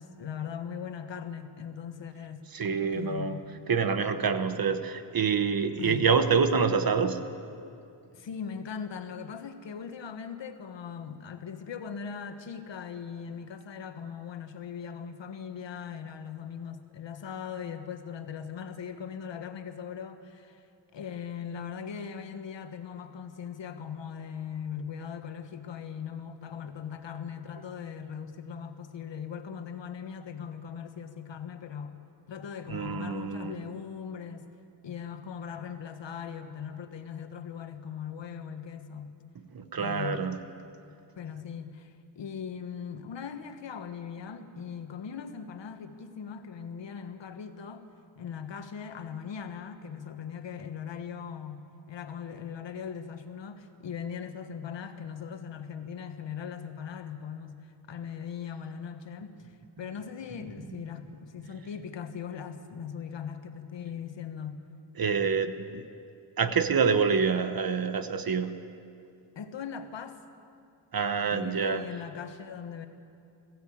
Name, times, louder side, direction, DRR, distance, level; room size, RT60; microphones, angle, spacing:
voice 1, 0.0-2.4 2.9-3.4 5.8-6.1 8.1-20.6 20.9-32.0 32.3-34.5 34.8-39.2 39.8-40.3 41.2-47.9 48.2-59.4 59.8-64.7 69.3-70.2 71.3-72.9, left 7 dB, 65° left, 7 dB, 1.5 m, -39 dB
voice 2, 2.5-3.4 3.7-7.2 32.7-33.6 39.5-40.4 65.0-65.8 66.4-68.5 70.9-71.8, right 5 dB, 50° right, 10 dB, 1.2 m, -26 dB
21.0 x 16.0 x 8.6 m, 2.5 s
wide cardioid pair, 135°, 47 cm